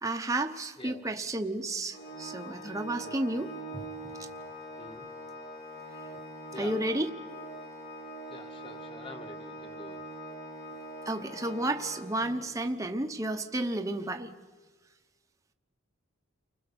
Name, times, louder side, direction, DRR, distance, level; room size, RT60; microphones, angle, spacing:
voice 1, 0.0-3.9 4.2-4.3 6.6-7.1 11.1-14.3, right 1 dB, 15° right, 5 dB, 1.0 m, -32 dB
Organ, 1.9-12.7, right 1 dB, 50° left, 7.3 m, -43 dB
voice 2, 3.0-3.4 4.8-5.1 6.5-6.8 8.3-10.0, left 1 dB, 25° left, 6 dB, 1.7 m, -47 dB
30.0 x 20.5 x 7.0 m, 1.4 s
head